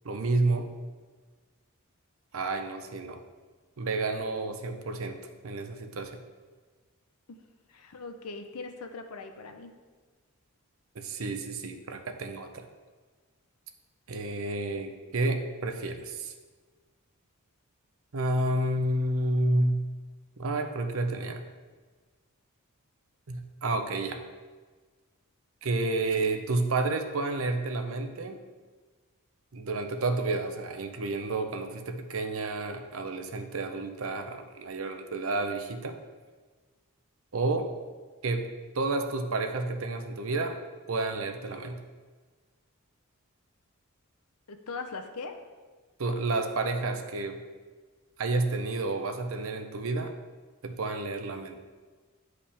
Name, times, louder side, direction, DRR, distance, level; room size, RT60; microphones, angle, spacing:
voice 1, 0.0-0.7 2.3-3.2 3.8-5.2 5.4-6.2 10.9-12.7 14.1-16.3 18.1-19.8 20.4-21.4 23.3-24.2 25.6-28.4 29.5-36.0 37.3-37.7 38.2-38.5 38.7-40.6 40.9-41.8 46.0-47.4 48.2-50.1 50.6-51.6, right 2 dB, 65° right, 6 dB, 0.7 m, -30 dB
voice 2, 7.7-9.7 44.5-45.4, left 4 dB, 85° left, 6 dB, 0.7 m, -40 dB
10.0 x 4.9 x 3.4 m, 1.4 s
head